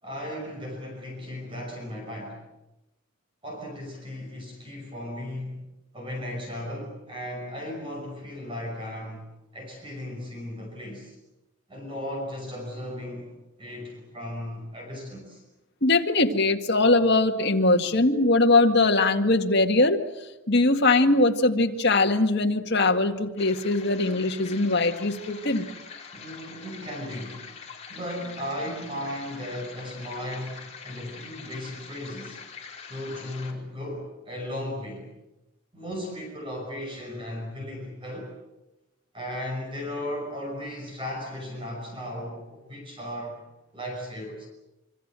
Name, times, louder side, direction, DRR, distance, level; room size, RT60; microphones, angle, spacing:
voice 1, 0.0-2.4 3.4-5.7 5.9-11.2 11.7-13.3 13.6-15.4 26.1-27.5 27.9-32.4 32.9-35.1 35.7-38.3 39.1-43.4 43.7-44.5, left 1 dB, 25° right, 1 dB, 5.9 m, -36 dB
voice 2, 15.8-25.7, left 2 dB, 50° left, 4 dB, 2.0 m, -21 dB
sound 1, 23.4-33.5, left 6 dB, 30° left, 4.3 m, -44 dB
26.0 x 25.0 x 7.7 m, 0.99 s
head